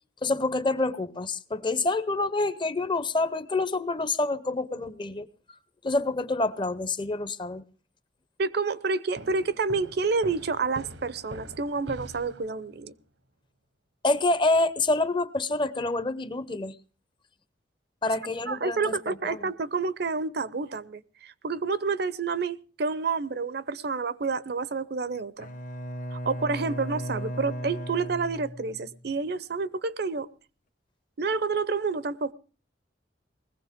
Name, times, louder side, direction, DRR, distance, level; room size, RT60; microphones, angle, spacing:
voice 1, 0.2-5.3 5.8-7.6 14.0-16.7 18.0-19.5, left 2 dB, 25° left, 0.6 m, -27 dB
voice 2, 8.4-12.9 18.5-25.5 26.1-30.3 31.2-32.3, right 4 dB, 60° right, 0.7 m, -29 dB
sound 1, 9.2-12.8, right 1 dB, 80° right, 1.2 m, -44 dB
Bowed string instrument, 25.4-29.0, equal, 45° left, 1.0 m, -36 dB
20.5 x 15.5 x 3.6 m
head